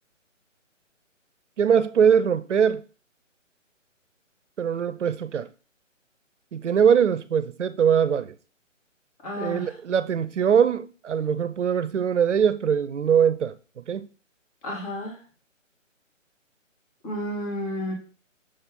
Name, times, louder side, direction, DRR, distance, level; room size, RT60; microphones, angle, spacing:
voice 1, 1.6-2.8 4.6-5.5 6.5-8.3 9.4-13.6 13.9-14.1, right 7 dB, 65° right, 0.7 m, -22 dB
voice 2, 9.2-9.8 14.6-15.2 17.0-17.9, left 1 dB, 25° left, 2.2 m, -31 dB
6.7 x 4.2 x 3.7 m
figure-of-eight pair, 155°, 39 cm